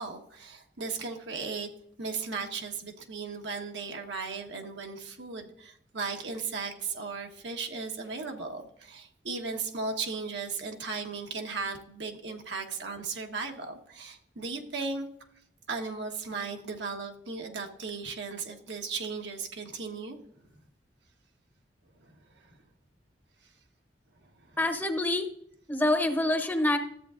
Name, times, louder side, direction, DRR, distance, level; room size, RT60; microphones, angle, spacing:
voice 1, 0.0-1.7 2.0-15.1 15.7-20.2 22.5-22.6, right 4 dB, 85° right, 3 dB, 1.2 m, -36 dB
voice 2, 24.6-25.3 25.7-26.8, left 1 dB, 10° left, 6 dB, 0.7 m, -26 dB
13.5 x 8.2 x 2.5 m, 0.68 s
head